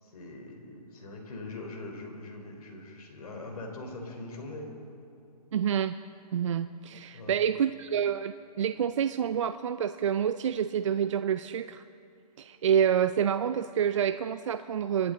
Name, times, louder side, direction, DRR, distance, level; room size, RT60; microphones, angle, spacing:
voice 1, 0.0-4.7 7.1-7.3, left 2 dB, 65° left, 2 dB, 3.9 m, -42 dB
voice 2, 5.5-5.9 6.3-11.8 12.4-15.1, right 8 dB, 50° right, 10 dB, 0.4 m, -28 dB
27.5 x 11.0 x 3.8 m, 2.8 s
hypercardioid pair, 155°, 21 cm